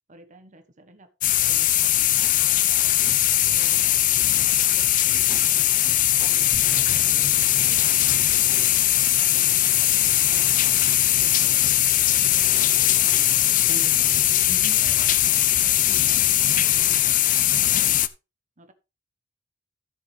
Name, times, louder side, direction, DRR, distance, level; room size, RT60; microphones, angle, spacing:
voice 1, 0.1-1.1 1.4-3.0 3.5-4.2 4.7-8.9 9.3-10.6 11.2-13.7 14.0-16.2 16.5-17.3 17.6-18.0 18.6-18.7, right 1 dB, 40° right, 1.2 m, -51 dB
sound 1, 1.2-18.1, left 13 dB, 40° left, 0.5 m, -20 dB
voice 2, 13.7-14.0 14.5-14.8, right 2 dB, 60° right, 1.1 m, -38 dB
13.5 x 6.8 x 3.3 m
head